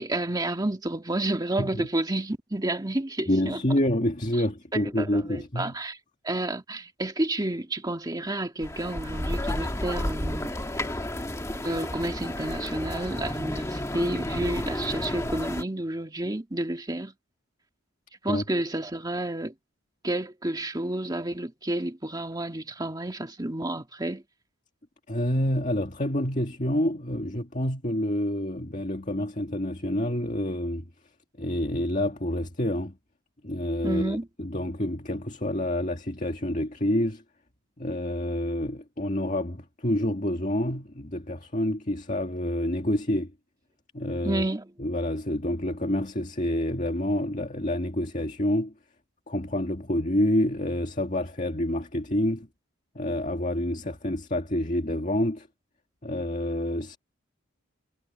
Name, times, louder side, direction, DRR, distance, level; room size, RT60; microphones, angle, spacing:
voice 1, 0.0-3.6 4.7-6.0 6.2-10.5 11.6-17.1 18.2-19.5 20.0-24.2 33.8-34.3 44.2-44.7, right 1 dB, 20° right, 1.8 m, -30 dB
voice 2, 3.3-5.7 18.3-18.4 25.1-30.9 31.4-33.0 33.4-37.2 37.8-43.3 43.9-44.5 44.8-48.7 49.3-52.5 53.0-55.5 56.0-57.0, left 1 dB, 35° left, 2.1 m, -28 dB
sound 1, 8.6-15.6, left 1 dB, 15° left, 1.7 m, -31 dB
head